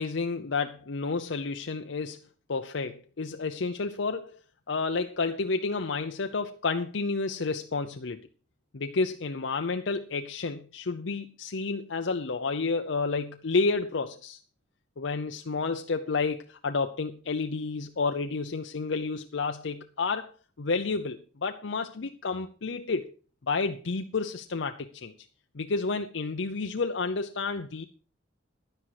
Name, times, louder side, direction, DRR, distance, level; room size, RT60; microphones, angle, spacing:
voice 1, 0.0-4.4 4.7-8.2 8.7-14.4 15.0-20.3 20.6-23.1 23.4-25.1 25.5-27.8, left 4 dB, 70° left, 6 dB, 0.7 m, -30 dB
11.0 x 10.0 x 4.8 m, 0.37 s
head